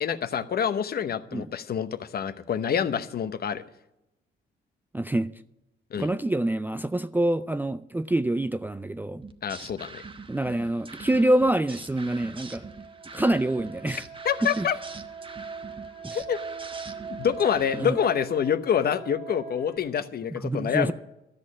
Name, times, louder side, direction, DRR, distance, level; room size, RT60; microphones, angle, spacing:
voice 1, 0.0-3.6 5.9-6.1 9.4-10.0 14.2-14.8 16.1-16.4 17.2-20.9, left 8 dB, 50° left, 0.9 m, -26 dB
voice 2, 4.9-5.3 6.0-9.2 10.3-12.7 13.1-14.0 14.6-14.7 16.0-16.2 17.7-18.0 20.4-20.9, right 1 dB, 10° right, 0.4 m, -26 dB
sound 1, 9.2-17.9, right 4 dB, 25° right, 1.0 m, -44 dB
sound 2, 11.8-19.8, right 5 dB, 60° right, 2.4 m, -41 dB
13.0 x 6.4 x 9.8 m
cardioid pair, 90°, 20 cm